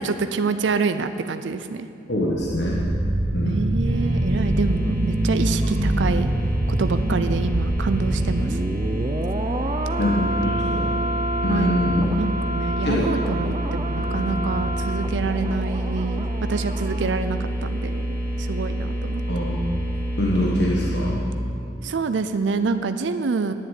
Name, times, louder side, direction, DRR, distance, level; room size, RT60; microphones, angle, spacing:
voice 1, 0.0-1.9 3.4-6.3 6.7-8.6 11.5-19.2 21.8-23.5, right 4 dB, 80° right, 10 dB, 0.5 m, -27 dB
voice 2, 2.1-2.9 3.3-3.7 5.4-5.7 10.0-10.9 11.4-12.0 12.8-13.1 14.0-14.5 19.3-19.6 20.2-21.2, left 1 dB, 70° left, -4 dB, 1.4 m, -25 dB
sound 1, 2.2-17.2 17.4-17.6, right 1 dB, 30° right, 0.5 m, -27 dB
sound 2, 3.8-21.1, right 1 dB, 10° left, 1.7 m, -28 dB
10.5 x 7.1 x 9.3 m, 2.6 s
head